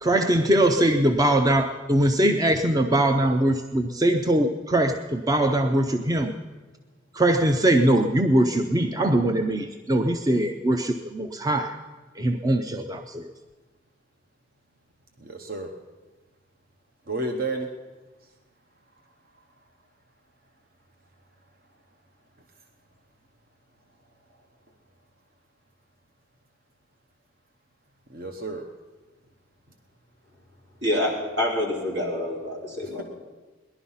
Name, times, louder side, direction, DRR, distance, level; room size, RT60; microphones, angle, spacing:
voice 1, 0.0-6.3 7.1-11.7 12.2-13.3, right 1 dB, 20° right, 6 dB, 0.5 m, -22 dB
voice 2, 15.2-15.7 17.1-17.7 28.1-28.6, right 2 dB, 50° right, 5 dB, 0.9 m, -31 dB
voice 3, 30.8-33.0, left 1 dB, 75° right, -3 dB, 3.7 m, -27 dB
19.0 x 11.5 x 5.6 m, 1.3 s
head